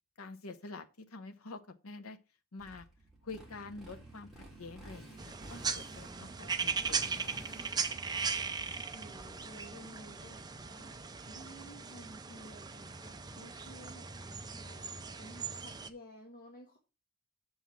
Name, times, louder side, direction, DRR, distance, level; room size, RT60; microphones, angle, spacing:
voice 1, 0.2-2.2 2.5-2.9 3.2-7.4, left 3 dB, 80° left, 0.8 m, -47 dB
Motorcycle, 2.6-11.2, right 1 dB, ahead, 3.2 m, -53 dB
sound 1, 5.2-15.9, right 5 dB, 20° right, 0.6 m, -38 dB
voice 2, 6.6-7.8 8.7-16.8, equal, 40° left, 1.7 m, -54 dB
7.1 x 5.6 x 6.2 m
head